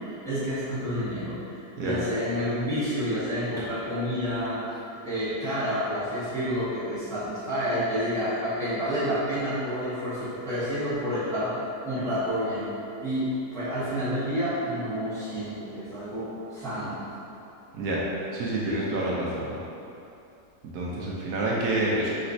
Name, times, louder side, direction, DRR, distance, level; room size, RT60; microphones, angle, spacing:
voice 1, 0.1-4.6 5.0-11.5 11.8-12.7 13.0-17.2, equal, ahead, -13 dB, 1.1 m, -29 dB
voice 2, 18.3-19.6 20.7-22.1, right 2 dB, 75° right, -5 dB, 1.2 m, -28 dB
4.2 x 3.9 x 2.6 m, 2.8 s
omnidirectional pair, 1.8 m